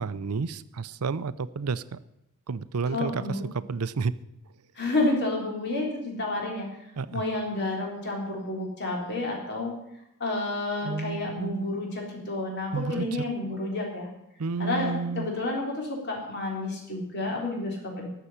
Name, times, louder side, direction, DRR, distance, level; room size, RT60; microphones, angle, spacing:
voice 1, 0.0-2.0 2.5-4.2 7.0-7.2 10.8-11.7 12.7-13.1 14.4-15.3, right 4 dB, 80° right, 15 dB, 0.6 m, -31 dB
voice 2, 2.9-3.4 4.8-6.7 7.1-9.7 10.2-14.1 14.6-18.1, left 2 dB, 50° left, -1 dB, 3.7 m, -30 dB
12.5 x 6.9 x 9.9 m, 0.83 s
head